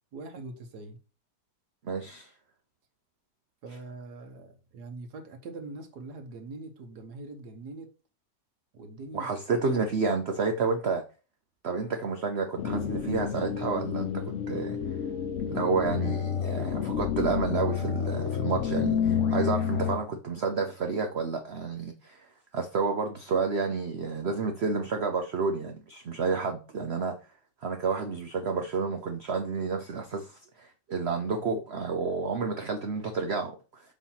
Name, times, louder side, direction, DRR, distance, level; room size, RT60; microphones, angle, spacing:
voice 1, 0.1-1.0 3.6-7.9 8.7-9.3, right 3 dB, 70° right, 1.6 m, -42 dB
voice 2, 1.8-2.3 9.1-11.0 11.6-14.8 15.5-22.3 22.5-27.2 27.6-33.8, right 4 dB, 55° right, 0.8 m, -30 dB
sound 1, 12.6-20.0, left 7 dB, 60° left, 0.8 m, -29 dB
7.2 x 2.8 x 5.7 m
omnidirectional pair, 1.8 m